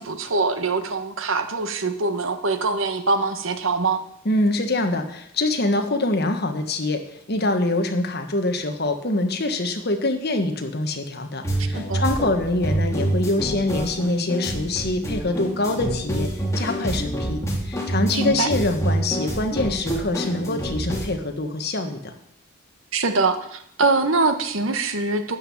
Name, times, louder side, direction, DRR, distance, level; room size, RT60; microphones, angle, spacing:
voice 1, 0.0-4.0 11.6-12.1 18.1-18.5 22.9-25.4, right 3 dB, 70° right, 8 dB, 1.2 m, -23 dB
voice 2, 4.2-16.3 16.5-22.1, left 2 dB, 50° left, 6 dB, 1.4 m, -24 dB
sound 1, 11.4-21.0, right 1 dB, 15° left, 2.2 m, -27 dB
12.5 x 5.7 x 8.6 m, 0.72 s
head